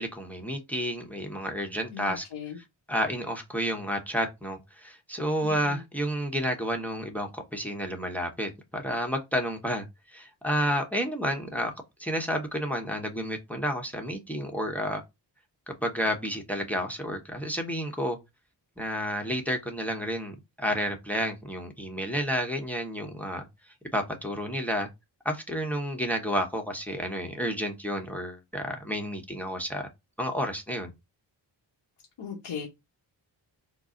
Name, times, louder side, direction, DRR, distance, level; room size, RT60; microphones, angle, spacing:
voice 1, 0.0-2.2 2.6-11.7 12.0-15.0 15.7-18.2 18.8-23.4 23.9-24.9 25.2-29.9 30.2-30.9, equal, 5° left, 0.9 m, -31 dB
voice 2, 1.9-2.6 5.4-5.8 32.2-32.7, left 7 dB, 85° left, 1.0 m, -38 dB
3.8 x 2.0 x 3.7 m
cardioid pair, 55°, 47 cm